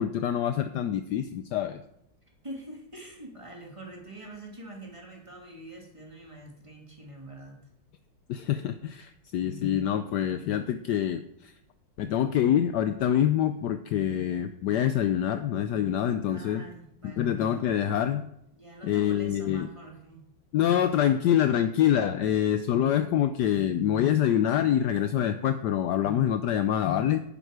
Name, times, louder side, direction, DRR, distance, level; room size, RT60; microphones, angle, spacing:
voice 1, 0.0-1.8 8.3-11.5 12.0-16.6 17.0-18.3 18.8-19.7 20.5-27.2, left 10 dB, 70° left, 9 dB, 1.1 m, -26 dB
voice 2, 2.4-7.6 16.3-17.4 18.5-20.2, right 1 dB, 15° right, -1 dB, 2.4 m, -45 dB
11.0 x 9.5 x 4.8 m, 0.76 s
omnidirectional pair, 2.0 m